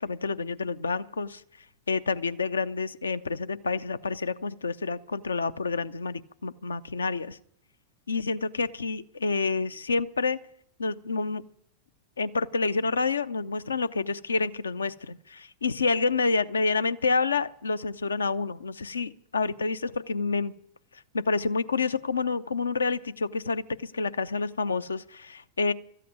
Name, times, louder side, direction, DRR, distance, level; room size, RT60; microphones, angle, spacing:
voice 1, 0.0-1.4 1.9-7.4 8.1-10.4 10.8-11.4 12.2-20.5 21.1-25.7, left 4 dB, 75° left, 15 dB, 0.5 m, -28 dB
13.5 x 8.4 x 9.4 m, 0.73 s
figure-of-eight pair, 90°, 0 cm